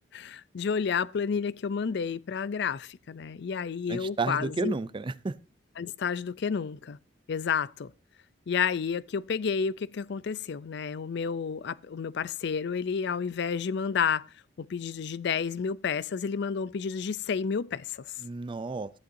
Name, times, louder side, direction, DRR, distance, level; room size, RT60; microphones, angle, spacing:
voice 1, 0.1-4.8 5.8-7.0 7.3-7.9 8.5-14.2 14.6-18.1, left 6 dB, 65° left, 0.4 m, -30 dB
voice 2, 3.9-5.3 18.2-18.9, right 3 dB, 25° right, 0.4 m, -31 dB
14.0 x 10.5 x 2.7 m
head